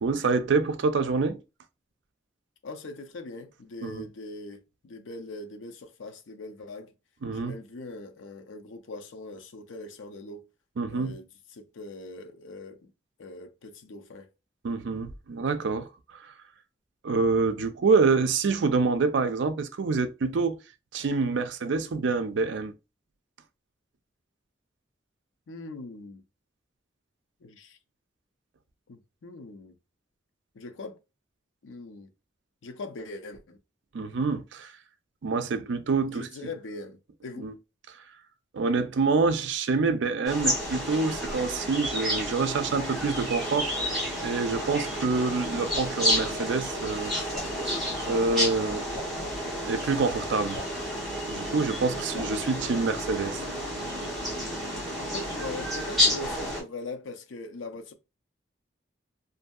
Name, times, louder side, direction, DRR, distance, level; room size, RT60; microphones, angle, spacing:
voice 1, 0.0-1.4 3.8-4.1 7.2-7.6 10.8-11.2 14.6-16.3 17.0-20.6 20.9-22.7 33.9-34.7 35.2-36.3 37.4-37.5 38.5-43.9 44.2-47.1 48.1-48.8 49.6-50.6 51.2-53.4, right 4 dB, 70° right, 0.4 m, -26 dB
voice 2, 2.6-6.9 7.3-10.5 10.9-11.3 11.5-12.9 13.2-14.3 25.5-26.2 27.4-27.8 28.9-29.8 30.5-31.0 31.6-32.1 32.6-33.6 36.1-37.5 55.0-57.9, left 2 dB, 90° left, 0.5 m, -41 dB
Calm Morning Outdoor Ambience, 40.3-56.6, equal, ahead, 1.2 m, -30 dB
Drip, 45.7-46.0 47.3-47.6 48.9-49.2 50.5-50.8 52.1-52.4, left 1 dB, 45° left, 0.7 m, -41 dB
2.6 x 2.6 x 2.3 m
head